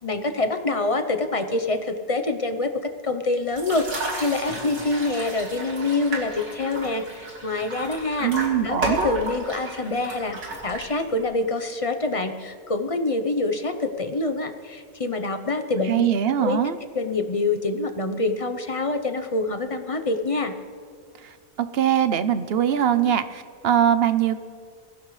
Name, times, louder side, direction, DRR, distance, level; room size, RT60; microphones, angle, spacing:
voice 1, 0.0-8.3 8.6-16.1 16.4-16.6 16.9-20.5, left 2 dB, 35° left, 7 dB, 0.6 m, -26 dB
sound 1, 3.5-11.3, right 2 dB, 80° right, 3.2 m, -33 dB
voice 2, 8.2-9.2 15.9-16.8 21.2-21.3 21.7-24.4, right 9 dB, 55° right, 11 dB, 0.8 m, -22 dB
24.0 x 16.0 x 3.2 m, 2.1 s
omnidirectional pair, 1.6 m